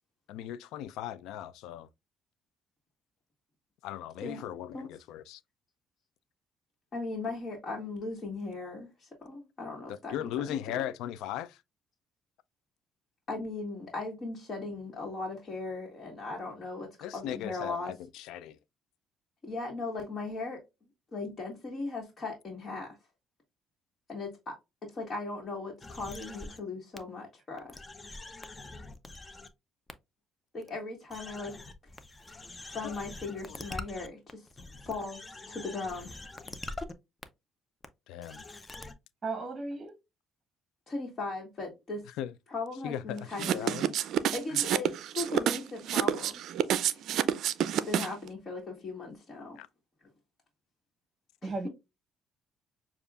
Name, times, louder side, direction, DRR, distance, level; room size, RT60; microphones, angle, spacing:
voice 1, 0.3-1.9 3.8-5.4 9.9-11.6 17.0-18.6 32.8-32.9 33.5-33.6 38.1-38.4 42.2-42.3 42.8-43.9 44.5-44.6 49.6-49.7, left 11 dB, 80° left, 0.3 m, -38 dB
voice 2, 6.9-10.8 13.3-17.9 19.4-20.6 21.1-23.0 24.1-27.8 30.5-31.5 32.7-34.5 34.8-36.1 40.9-42.0 42.5-43.7 44.3-46.4 46.7-47.0 47.9-49.6 51.4-51.5, left 3 dB, 40° left, 1.5 m, -38 dB
sound 1, 25.8-26.6 27.0-27.1 27.6-29.5 29.9-30.0 30.6-30.7 31.1-36.9 37.2-37.3 37.8-37.9 38.2-38.9, left 2 dB, 25° left, 0.7 m, -44 dB
voice 3, 39.2-39.9 51.4-51.7, right 3 dB, 35° right, 0.9 m, -35 dB
sound 2, 43.4-48.3, right 10 dB, 70° right, 0.4 m, -28 dB
6.6 x 2.4 x 2.3 m
supercardioid pair, 75°, 0 cm